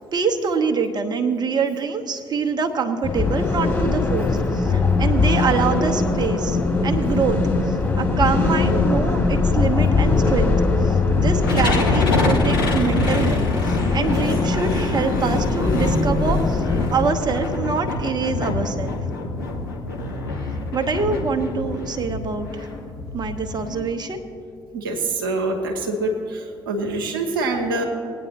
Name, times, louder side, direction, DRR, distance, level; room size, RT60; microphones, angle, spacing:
voice 1, 0.1-6.6 6.8-7.4 7.7-10.6 10.8-16.6 16.9-19.0 20.7-22.7 23.1-24.2, right 5 dB, 40° right, 5 dB, 1.0 m, -25 dB
sound 1, 3.0-16.9, left 3 dB, 20° left, 2.9 m, -21 dB
sound 2, 11.4-23.8, left 3 dB, 80° left, 1.1 m, -25 dB
voice 2, 24.7-27.8, right 2 dB, 80° right, 1 dB, 1.0 m, -25 dB
19.5 x 9.3 x 2.9 m, 2.4 s
figure-of-eight pair, 45°, 11 cm